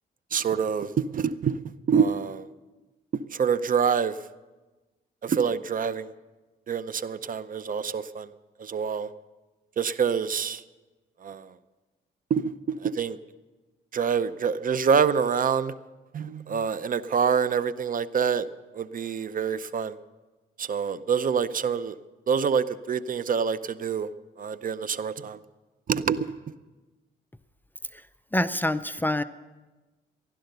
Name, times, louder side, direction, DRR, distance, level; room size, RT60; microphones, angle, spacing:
voice 1, 0.3-0.9 1.1-1.6 1.9-2.5 3.4-4.1 5.2-6.1 6.7-8.3 8.6-9.1 9.8-10.6 11.2-11.4 12.3-12.4 12.8-13.2 13.9-15.7 16.1-18.5 18.8-19.9 20.6-21.9 22.3-24.1 24.4-25.4 25.9-26.3, right 6 dB, 45° right, 16 dB, 0.6 m, -26 dB
voice 2, 28.3-29.2, left 1 dB, 10° left, 12 dB, 0.5 m, -26 dB
16.0 x 11.5 x 6.8 m, 1.2 s
cardioid pair, 90°, 20 cm